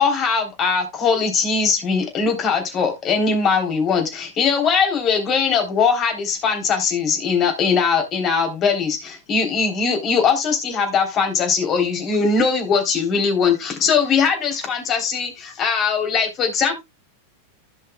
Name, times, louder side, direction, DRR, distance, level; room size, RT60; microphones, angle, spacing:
voice 1, 0.0-16.8, left 5 dB, 30° left, 3.3 m, -20 dB
15.5 x 5.7 x 2.2 m
figure-of-eight pair, 90°, 0 cm